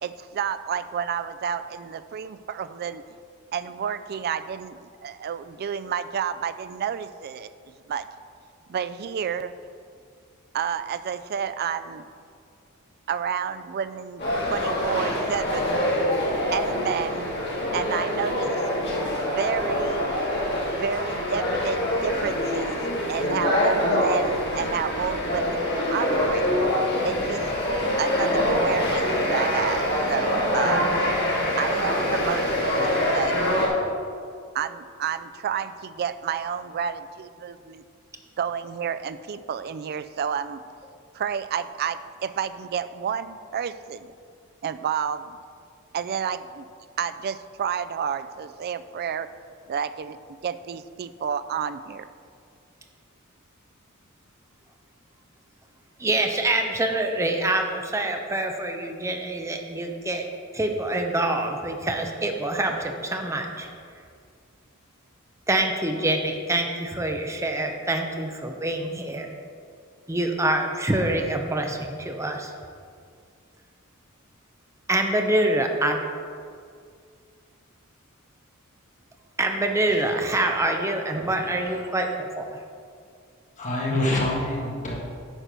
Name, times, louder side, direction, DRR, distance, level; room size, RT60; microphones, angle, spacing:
voice 1, 0.0-3.0 3.5-7.5 7.9-8.1 8.7-9.5 10.5-12.0 13.1-15.8 16.5-17.3 17.7-18.6 19.2-20.1 20.7-22.8 23.1-26.5 27.0-27.5 28.0-30.9 31.6-33.4 34.5-37.8 38.4-40.6 41.1-44.1 44.6-45.4 45.9-46.7 47.0-49.3 49.7-50.2 50.4-52.1, right 7 dB, 45° right, 13 dB, 0.3 m, -30 dB
sound 1, 14.2-33.7, left 1 dB, 50° left, 2.2 m, -25 dB
voice 2, 56.0-60.3 60.5-63.7 65.5-69.3 70.1-72.5 74.9-76.0 79.4-82.5, right 1 dB, 15° right, 3 dB, 0.7 m, -25 dB
voice 3, 83.6-84.9, left 1 dB, 35° left, -4 dB, 1.9 m, -26 dB
8.9 x 4.5 x 6.7 m, 2.2 s
head